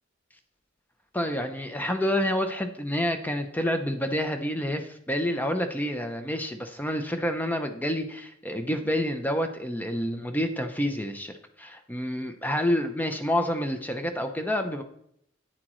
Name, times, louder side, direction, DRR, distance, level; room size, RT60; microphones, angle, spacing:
voice 1, 1.1-14.8, equal, 10° left, 6 dB, 0.6 m, -28 dB
10.0 x 8.8 x 3.1 m, 0.71 s
head